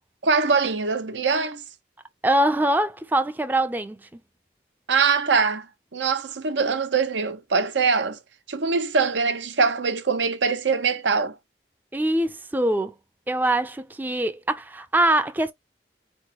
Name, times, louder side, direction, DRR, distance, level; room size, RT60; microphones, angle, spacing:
voice 1, 0.2-1.6 4.9-8.2 8.5-11.4, right 5 dB, 90° right, 0.8 m, -23 dB
voice 2, 2.2-4.0 11.9-12.9 13.3-15.5, right 1 dB, 10° right, 0.4 m, -23 dB
4.3 x 3.0 x 2.8 m
head